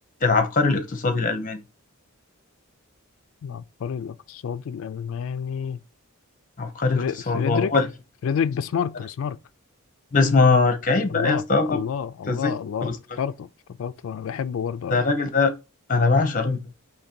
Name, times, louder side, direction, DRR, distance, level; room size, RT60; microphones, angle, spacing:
voice 1, 0.2-1.6 6.6-7.8 10.1-11.8 12.3-12.5 12.8-13.0 14.9-15.5 15.9-16.6, left 3 dB, 40° left, 0.8 m, -21 dB
voice 2, 3.4-5.8 6.9-7.7 8.2-9.4 11.1-12.9 13.2-15.0, left 7 dB, 65° left, 0.3 m, -29 dB
3.7 x 3.0 x 4.4 m
head